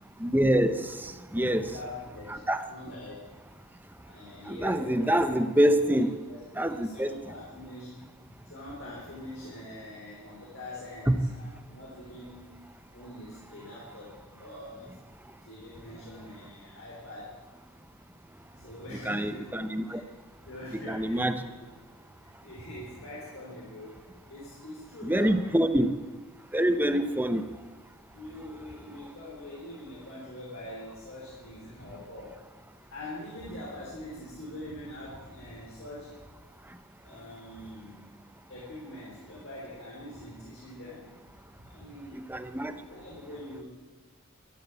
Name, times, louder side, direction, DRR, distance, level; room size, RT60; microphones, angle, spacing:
voice 1, 0.2-0.7 1.3-1.6 2.3-2.6 4.5-6.1 6.6-7.1 11.1-11.2 19.0-20.0 20.9-21.4 25.0-25.9 26.5-27.4 42.3-42.7, right 1 dB, 10° right, 9 dB, 0.7 m, -25 dB
voice 2, 1.3-3.2 4.0-5.4 5.7-8.0 8.3-12.5 12.9-15.0 15.4-17.4 18.6-20.0 20.4-21.3 22.2-25.8 27.0-27.2 28.1-32.4 32.9-36.1 37.0-38.1 38.5-41.1 41.6-42.2 42.8-43.6, left 1 dB, 65° left, -5 dB, 4.1 m, -44 dB
13.0 x 12.5 x 8.2 m, 1.2 s
head